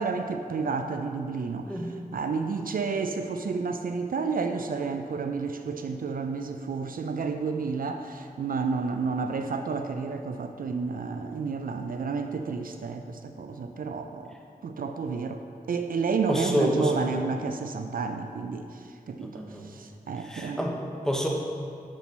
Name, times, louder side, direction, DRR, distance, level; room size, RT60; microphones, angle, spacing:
voice 1, 0.0-1.8 2.1-14.3 14.6-15.4 15.7-20.6, right 4 dB, 65° right, 7 dB, 0.4 m, -31 dB
voice 2, 16.3-17.2 19.2-19.7 20.2-21.3, equal, 5° left, 0 dB, 1.1 m, -29 dB
7.0 x 4.1 x 6.1 m, 2.4 s
cardioid pair, 40°, 15 cm